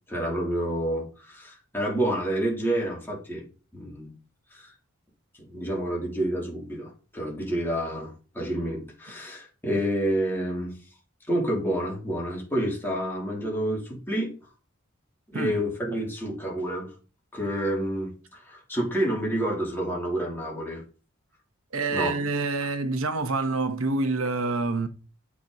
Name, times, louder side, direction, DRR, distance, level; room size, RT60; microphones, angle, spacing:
voice 1, 0.1-3.4 3.7-4.1 4.5-4.7 5.4-10.7 11.3-14.3 15.3-16.9 17.3-20.8 21.9-22.1, right 1 dB, 10° left, 3.1 m, -29 dB
voice 2, 21.7-24.9, right 3 dB, 85° right, 1.1 m, -27 dB
8.6 x 6.2 x 4.0 m
head